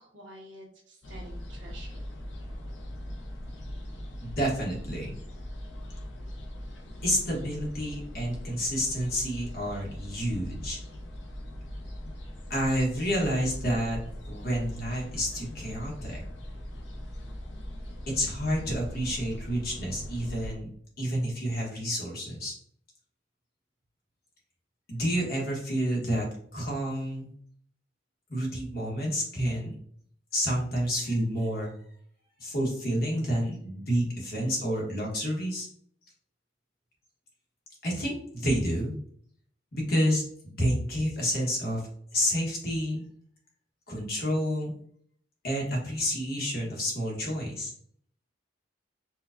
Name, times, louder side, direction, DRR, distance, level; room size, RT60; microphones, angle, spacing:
voice 1, 0.0-2.0, right 1 dB, 75° right, -1 dB, 1.1 m, -48 dB
sound 1, 1.0-20.6, equal, 70° left, 0.7 m, -40 dB
voice 2, 4.2-5.1 7.0-10.8 12.5-14.0 14.3-16.2 18.1-20.7 21.0-22.5 24.9-26.2 26.5-27.3 28.3-29.8 30.3-31.7 32.4-35.7 37.8-39.0 39.7-41.8 42.1-43.1 43.9-44.7 45.4-47.7, equal, 50° left, -2 dB, 1.1 m, -29 dB
4.4 x 2.3 x 2.5 m, 0.62 s
head